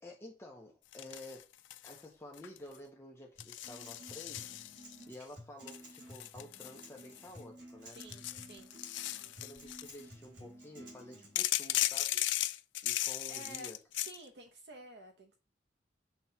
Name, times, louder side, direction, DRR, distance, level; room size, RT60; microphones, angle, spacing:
voice 1, 0.0-1.5 1.8-4.4 5.1-8.0 9.4-12.2 12.8-13.8, left 1 dB, 15° left, 0 dB, 0.8 m, -51 dB
sound 1, 0.9-2.0 2.3-2.8 3.4-5.0 5.7-7.4 7.9-10.0 11.4-14.2, left 14 dB, 80° left, 0.4 m, -37 dB
Acoustic guitar, 3.4-11.4, equal, 90° right, 2.5 m, -53 dB
voice 2, 7.9-8.7 13.3-13.7 14.0-15.4, right 2 dB, 65° right, 2 dB, 0.9 m, -51 dB
5.9 x 3.0 x 5.6 m, 0.32 s
head